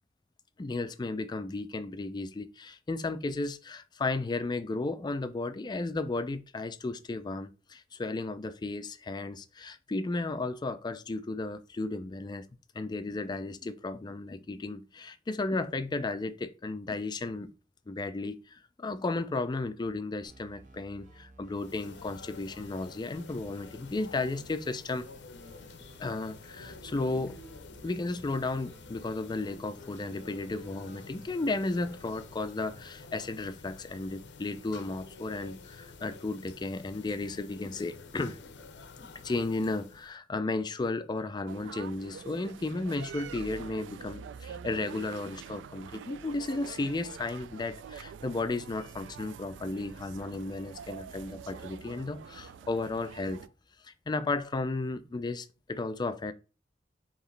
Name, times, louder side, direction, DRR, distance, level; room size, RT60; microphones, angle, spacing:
voice 1, 0.6-12.4 12.8-17.5 17.9-25.1 26.0-27.4 27.8-38.4 39.0-53.5 53.8-56.3, left 2 dB, 25° left, 0.4 m, -34 dB
sound 1, 20.2-33.0, right 1 dB, 45° right, 0.8 m, -56 dB
sound 2, 21.5-40.2, left 4 dB, 70° left, 0.5 m, -49 dB
sound 3, 41.5-53.5, right 7 dB, 85° right, 0.3 m, -46 dB
4.7 x 3.0 x 3.2 m
head